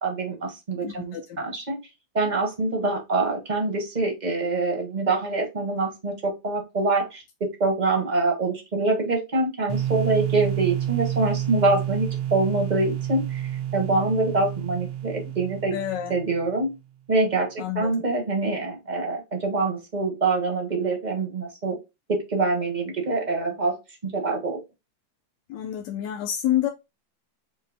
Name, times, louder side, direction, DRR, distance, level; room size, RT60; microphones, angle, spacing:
voice 1, 0.0-1.8 2.1-15.8 16.1-16.7 17.1-21.8 22.1-24.6, right 3 dB, 30° right, 1.1 m, -25 dB
voice 2, 0.8-1.4 15.7-16.1 17.6-18.0 25.5-26.7, left 11 dB, 75° left, 1.2 m, -28 dB
sound 1, 9.7-16.5, right 11 dB, 65° right, 1.1 m, -29 dB
5.4 x 2.1 x 3.9 m
omnidirectional pair, 2.0 m